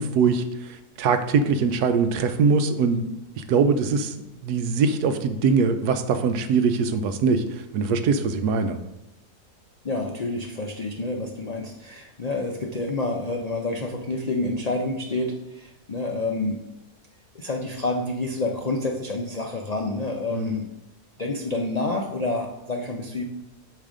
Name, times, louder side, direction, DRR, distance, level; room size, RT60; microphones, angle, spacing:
voice 1, 0.0-3.1 3.4-4.1 4.4-8.8 20.3-20.6, right 5 dB, 80° right, 9 dB, 1.2 m, -22 dB
voice 2, 9.8-16.6 17.3-20.7 21.2-23.2, left 2 dB, 75° left, 1 dB, 0.3 m, -28 dB
8.6 x 3.3 x 6.2 m, 0.91 s
omnidirectional pair, 1.7 m